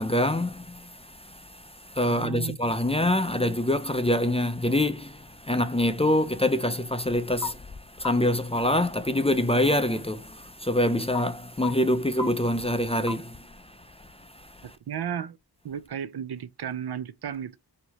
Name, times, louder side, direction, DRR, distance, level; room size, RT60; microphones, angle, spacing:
voice 1, 0.0-14.8, left 1 dB, 15° left, 0.4 m, -26 dB
sound 1, 2.0-13.6, left 6 dB, 70° left, 1.1 m, -44 dB
voice 2, 2.1-2.6 12.2-12.3 14.6-15.4 15.6-17.6, right 9 dB, 65° right, 0.5 m, -34 dB
4.6 x 2.8 x 3.4 m
wide cardioid pair, 60°, 42 cm